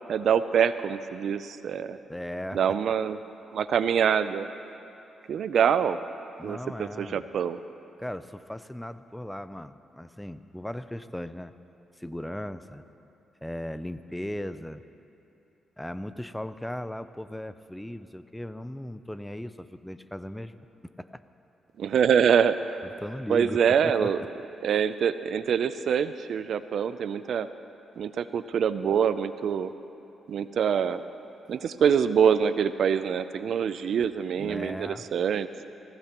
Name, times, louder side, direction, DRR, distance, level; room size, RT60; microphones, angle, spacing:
voice 1, 0.1-2.0 2.5-3.2 3.5-4.5 5.3-6.0 6.4-7.6 21.8-22.8 23.3-24.2 24.6-27.5 28.0-29.7 30.3-31.0 31.5-35.7, right 7 dB, 70° right, 13 dB, 0.4 m, -25 dB
voice 2, 2.1-2.6 6.4-7.2 8.0-11.5 12.0-12.8 13.4-14.8 15.8-20.5 20.8-21.2 22.8-24.1 34.4-35.1, left 1 dB, 5° left, 12 dB, 0.5 m, -37 dB
20.5 x 16.0 x 3.0 m, 2.9 s
cardioid pair, 70°, 0 cm